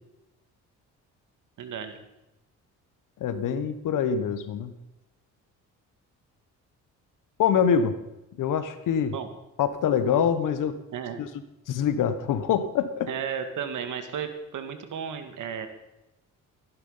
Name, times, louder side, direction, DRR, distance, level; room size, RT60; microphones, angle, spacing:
voice 1, 1.6-2.0 9.1-9.3 10.9-11.2 13.1-15.7, right 7 dB, 70° right, 8 dB, 2.0 m, -34 dB
voice 2, 3.2-4.7 7.4-7.9 8.4-9.1 9.6-10.7 11.2-11.3 11.7-13.1, left 7 dB, 75° left, 11 dB, 1.3 m, -24 dB
15.5 x 10.5 x 5.7 m, 0.95 s
cardioid pair, 75°, 32 cm